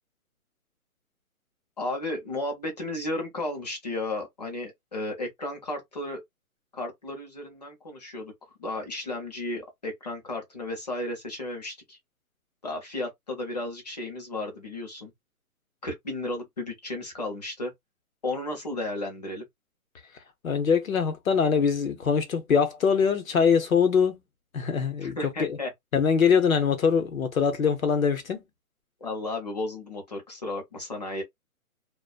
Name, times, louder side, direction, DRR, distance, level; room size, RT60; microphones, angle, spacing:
voice 1, 1.8-6.2 6.7-8.3 8.6-12.0 12.6-15.1 15.8-17.7 18.2-19.4 25.0-25.7 29.0-31.2, left 2 dB, 30° left, 0.7 m, -34 dB
voice 2, 20.4-24.2 24.5-25.6 25.9-28.4, left 6 dB, 65° left, 0.9 m, -23 dB
2.3 x 2.2 x 2.4 m
hypercardioid pair, 170°, 44 cm